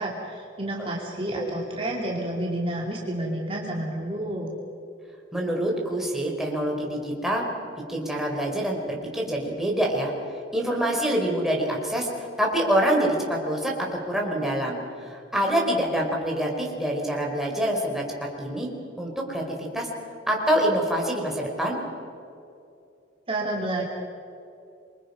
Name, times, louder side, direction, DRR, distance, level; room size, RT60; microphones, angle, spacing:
voice 1, 0.0-4.5 23.3-23.8, right 1 dB, 30° right, -3 dB, 2.9 m, -30 dB
voice 2, 5.3-7.5 7.9-10.1 10.5-18.0 18.4-18.7 19.0-19.9 20.3-21.8, right 1 dB, ahead, -2 dB, 4.3 m, -26 dB
27.5 x 23.5 x 5.6 m, 2.6 s
head